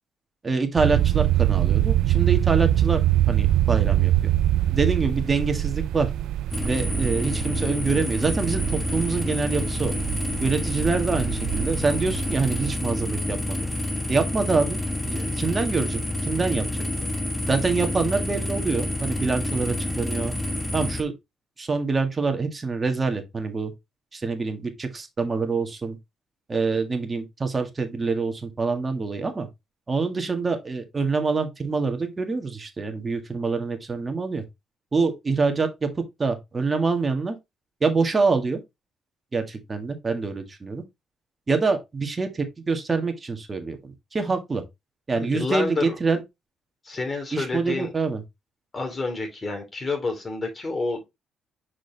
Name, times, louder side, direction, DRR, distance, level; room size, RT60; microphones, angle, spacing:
voice 1, 0.4-3.0 3.3-4.3 4.7-6.1 6.7-9.9 10.4-13.6 14.1-14.8 15.1-16.9 17.5-20.3 20.7-21.1 21.6-23.7 24.1-26.0 26.5-29.5 29.9-34.4 34.9-37.3 37.8-38.6 39.3-40.8 41.5-44.6 45.1-46.2 47.3-48.2, right 4 dB, 30° right, 1.8 m, -25 dB
sound 1, 0.8-12.8, right 13 dB, 85° right, 0.3 m, -24 dB
sound 2, 6.5-21.0, left 1 dB, 10° left, 1.3 m, -28 dB
voice 2, 45.1-45.9 46.8-47.9 48.7-51.1, left 3 dB, 30° left, 3.2 m, -29 dB
6.4 x 4.9 x 3.3 m
cardioid pair, 90°, 0 cm